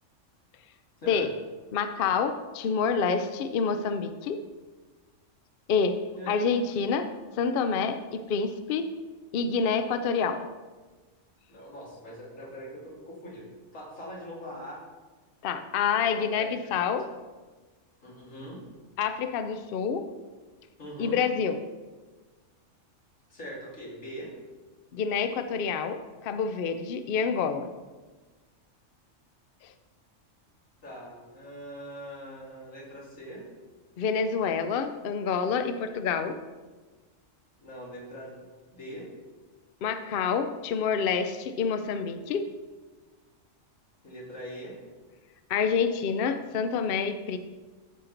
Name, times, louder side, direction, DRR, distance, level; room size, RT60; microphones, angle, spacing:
voice 1, 1.7-4.4 5.7-5.9 6.3-7.1 7.4-8.9 9.3-10.5 15.4-17.1 19.0-20.1 21.0-21.6 24.9-27.7 34.0-36.4 39.8-42.4 45.5-47.4, left 6 dB, 60° left, 9 dB, 0.6 m, -27 dB
voice 2, 11.5-13.5 13.7-14.8 15.9-17.0 18.0-18.6 20.8-21.2 23.3-24.3 30.8-33.4 37.6-38.4 38.7-39.0 44.0-44.8, equal, 85° left, -5 dB, 2.7 m, -42 dB
13.0 x 4.4 x 3.9 m, 1.3 s
omnidirectional pair, 1.3 m